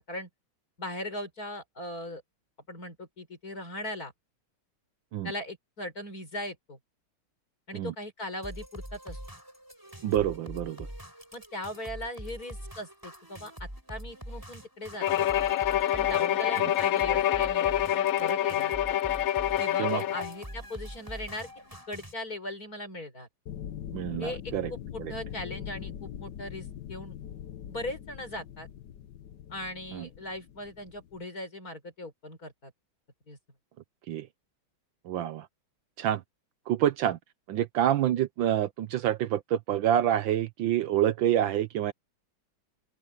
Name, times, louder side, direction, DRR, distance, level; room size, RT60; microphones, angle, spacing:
voice 1, 0.8-2.2 2.7-4.1 5.2-6.8 7.7-9.2 11.3-15.3 15.9-18.7 19.6-21.5 21.9-23.3 24.2-27.2 27.7-28.7 29.5-32.7 33.3-33.4, left 1 dB, 40° left, 6.4 m, -39 dB
sound 1, 8.4-22.1, equal, 10° right, 7.7 m, -44 dB
voice 2, 10.0-10.8 19.8-20.0 23.9-24.7 25.0-25.1 29.9-30.1 34.1-34.3 35.1-35.5 36.0-36.2 36.7-37.2 37.5-41.9, right 11 dB, 70° right, 1.4 m, -27 dB
Bowed string instrument, 15.0-20.4, left 12 dB, 85° left, 0.7 m, -26 dB
sound 2, 23.5-31.2, left 9 dB, 60° left, 1.5 m, -42 dB
open air
omnidirectional pair, 2.3 m